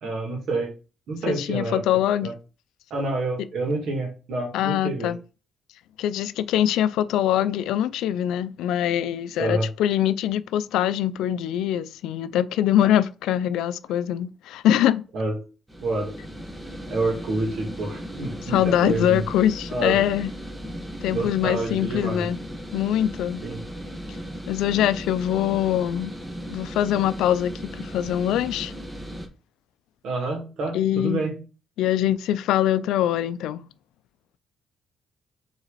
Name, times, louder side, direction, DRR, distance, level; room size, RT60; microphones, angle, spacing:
voice 1, 0.0-0.7 1.1-1.8 2.2-2.3 2.9-5.1 9.4-9.7 15.1-15.4 15.8-16.2 16.9-19.2 19.7-20.0 21.1-22.3 23.4-23.6 30.0-31.4, right 2 dB, 70° right, 2.6 m, -28 dB
voice 2, 1.3-2.3 4.5-5.2 6.0-15.0 18.5-20.3 21.0-22.4 22.7-23.4 24.5-26.1 26.5-28.7 30.7-31.2 31.8-33.6, left 11 dB, 90° left, 0.4 m, -23 dB
sound 1, 15.7-29.3, equal, 10° right, 1.4 m, -36 dB
7.0 x 4.0 x 4.2 m
cardioid pair, 90°, 0 cm